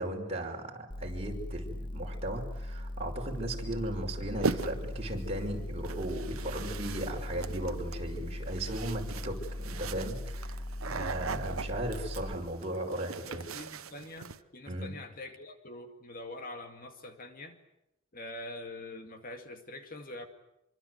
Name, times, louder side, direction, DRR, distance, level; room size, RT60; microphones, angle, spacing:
voice 1, 0.0-13.4 14.7-15.0, right 1 dB, 30° right, 0 dB, 5.4 m, -37 dB
sound 1, 0.9-12.4, left 1 dB, 25° left, 1.6 m, -39 dB
sound 2, 4.4-5.0 5.8-14.4, right 4 dB, 85° right, 1.1 m, -39 dB
voice 2, 13.3-17.6 18.1-20.3, left 2 dB, 45° left, 6 dB, 2.2 m, -44 dB
25.5 x 24.5 x 8.1 m, 0.84 s
head